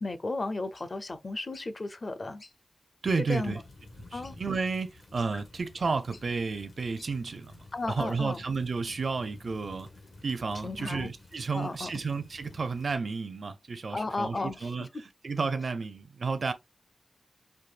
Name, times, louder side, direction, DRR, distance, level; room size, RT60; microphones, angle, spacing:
voice 1, 0.0-2.4 3.3-3.6 4.1-4.4 7.7-8.4 10.6-11.1 11.5-11.9 13.9-14.9, left 2 dB, 40° left, 0.6 m, -34 dB
sound 1, 0.7-0.9 1.5-1.7 2.4-2.6 3.0-3.1 3.3-3.4 4.2-4.4 5.2-5.3 6.1-6.3 7.0-7.1, left 3 dB, 55° left, 1.0 m, -53 dB
voice 2, 3.0-3.6 4.1-9.9 10.2-14.9 15.2-16.5, right 4 dB, 60° right, 0.5 m, -32 dB
sound 2, 3.3-13.0, left 2 dB, 75° left, 1.4 m, -51 dB
4.6 x 2.7 x 2.4 m
wide cardioid pair, 120°, 0 cm